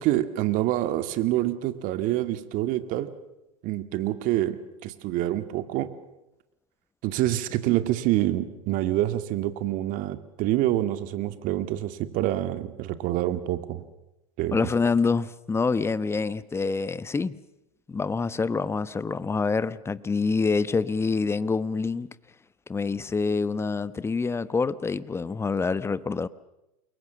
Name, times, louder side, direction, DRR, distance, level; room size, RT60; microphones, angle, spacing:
voice 1, 0.0-3.1 3.6-5.9 7.0-13.8 14.4-14.6, right 14 dB, 50° right, 2.1 m, -26 dB
voice 2, 14.5-17.4 17.9-22.1 22.7-26.3, left 4 dB, 15° left, 1.1 m, -26 dB
28.5 x 22.5 x 7.1 m
hypercardioid pair, 95°, 18 cm